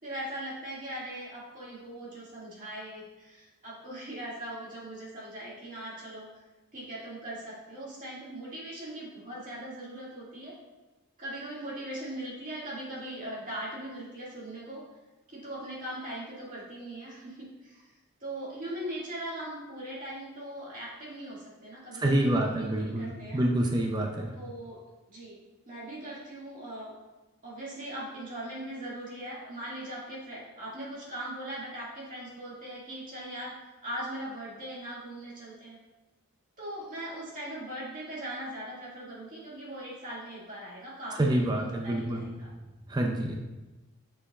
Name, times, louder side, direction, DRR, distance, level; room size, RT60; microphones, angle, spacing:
voice 1, 0.0-6.3 6.7-10.6 11.2-14.8 15.3-23.4 24.3-24.8 25.1-25.4 25.7-26.9 27.4-33.6 33.8-35.8 36.6-42.5, right 1 dB, 35° right, -6 dB, 2.2 m, -40 dB
voice 2, 22.0-24.3 41.2-42.2 42.9-43.4, right 1 dB, 20° right, 1 dB, 0.5 m, -27 dB
7.6 x 6.6 x 2.4 m, 1.1 s
head